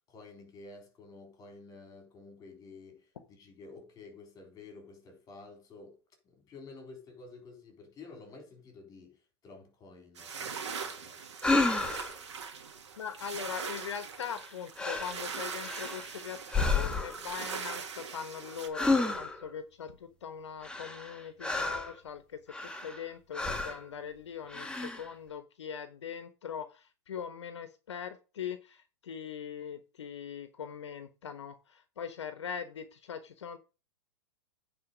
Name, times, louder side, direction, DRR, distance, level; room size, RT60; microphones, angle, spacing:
voice 1, 0.1-6.0 6.2-11.2, left 3 dB, 25° left, 3.9 m, -51 dB
sound 1, 10.2-18.7, right 6 dB, 75° right, 2.0 m, -41 dB
sound 2, 11.4-12.2 14.2-14.5 14.8-15.2 15.6-16.1 16.5-17.3 18.7-19.5 20.6-22.0 22.5-23.0 23.3-23.8 24.5-25.1, left 3 dB, 5° left, 1.4 m, -31 dB
voice 2, 13.0-33.6, left 7 dB, 75° left, 1.1 m, -41 dB
9.6 x 4.3 x 6.8 m
hypercardioid pair, 110°, 15 cm